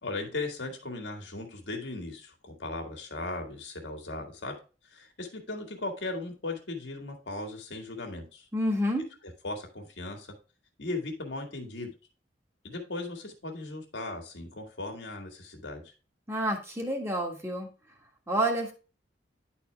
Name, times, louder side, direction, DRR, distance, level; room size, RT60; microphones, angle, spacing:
voice 1, 0.0-4.5 4.9-8.5 9.4-10.3 10.8-11.9 12.6-15.9, left 2 dB, 80° left, 3 dB, 1.8 m, -37 dB
voice 2, 8.5-9.1 16.3-17.7 18.3-18.7, right 1 dB, 15° right, 1 dB, 1.5 m, -29 dB
10.0 x 4.3 x 3.3 m, 0.32 s
head